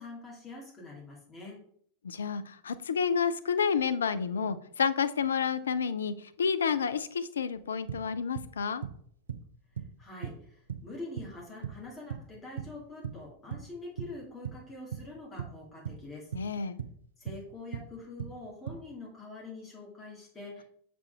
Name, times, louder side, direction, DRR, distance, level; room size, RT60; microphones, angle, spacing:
voice 1, 0.0-1.6 10.0-16.3 17.2-20.6, left 2 dB, 20° left, -4 dB, 2.3 m, -45 dB
voice 2, 2.0-8.8 16.3-16.8, left 6 dB, 70° left, 13 dB, 0.4 m, -30 dB
sound 1, 7.5-7.6 7.9-8.6 8.8-9.5 9.8-10.0 10.2-10.4 10.7-11.4 11.6-12.8 13.0-13.7 14.0-14.6 14.9-15.1 15.4-16.1 16.3-17.0 17.3-17.5 17.7-17.9 18.2-18.8, right 8 dB, 70° right, 0.5 m, -39 dB
6.7 x 5.1 x 3.4 m, 0.64 s
figure-of-eight pair, 90°, 0 cm